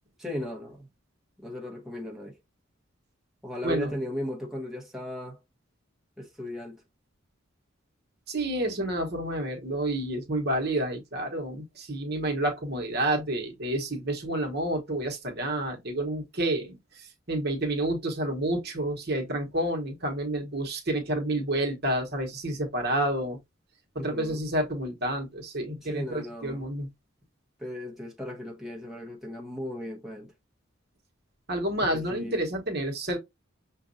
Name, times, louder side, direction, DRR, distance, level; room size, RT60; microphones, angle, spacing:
voice 1, 0.2-0.9 1.4-2.4 3.4-5.4 6.2-6.8 24.0-24.5 25.8-26.6 27.6-30.3 31.9-32.4, left 1 dB, ahead, 1.0 m, -36 dB
voice 2, 8.3-23.4 23.9-26.9 31.5-33.2, right 1 dB, 50° right, 1.1 m, -29 dB
6.1 x 2.5 x 2.6 m
head